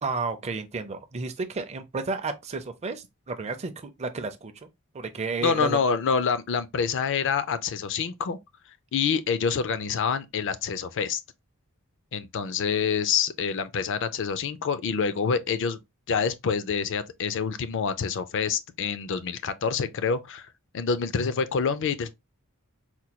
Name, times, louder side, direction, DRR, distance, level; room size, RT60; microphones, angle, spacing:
voice 1, 0.0-4.7 4.9-5.8, right 4 dB, 30° right, 0.4 m, -32 dB
voice 2, 5.4-8.4 8.9-11.2 12.1-15.8 16.1-20.5 20.7-22.1, left 6 dB, 55° left, 0.4 m, -27 dB
4.3 x 2.2 x 2.8 m
head